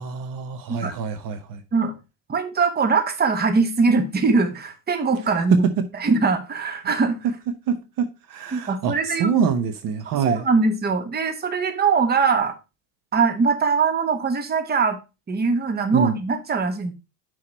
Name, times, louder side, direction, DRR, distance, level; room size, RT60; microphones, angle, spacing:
voice 1, 0.0-1.6 5.5-5.8 7.7-10.4 15.9-16.1, right 6 dB, 55° right, 10 dB, 1.0 m, -25 dB
voice 2, 2.3-5.6 5.9-7.2 8.5-9.3 10.0-12.5 13.1-15.0 15.3-16.9, right 4 dB, 25° right, 9 dB, 1.1 m, -22 dB
5.9 x 4.7 x 4.4 m, 0.27 s
supercardioid pair, 100°, 40 cm